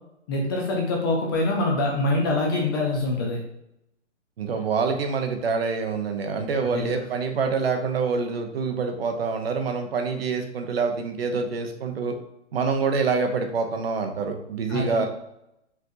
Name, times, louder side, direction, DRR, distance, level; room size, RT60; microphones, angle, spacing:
voice 1, 0.3-3.4 6.6-7.0 14.7-15.1, left 2 dB, 20° left, -1 dB, 0.5 m, -25 dB
voice 2, 4.4-12.2 12.5-15.1, right 5 dB, 55° right, 5 dB, 0.8 m, -26 dB
4.6 x 3.5 x 2.6 m, 0.82 s
figure-of-eight pair, 130°, 36 cm